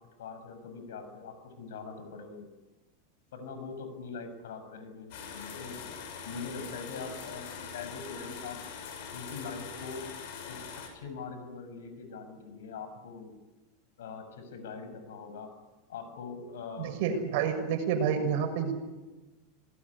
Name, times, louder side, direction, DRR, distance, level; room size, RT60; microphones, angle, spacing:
voice 1, 0.2-2.5 3.3-5.8 6.2-8.6 9.1-10.0 10.4-10.6 10.9-13.3 14.0-15.5 15.9-17.0, left 5 dB, 90° left, 9 dB, 6.6 m, -42 dB
sound 1, 5.1-10.9, left 6 dB, 60° left, 7.1 m, -43 dB
voice 2, 16.8-18.7, right 7 dB, 55° right, 5 dB, 6.4 m, -29 dB
26.5 x 19.5 x 9.9 m, 1.1 s
supercardioid pair, 155°, 0 cm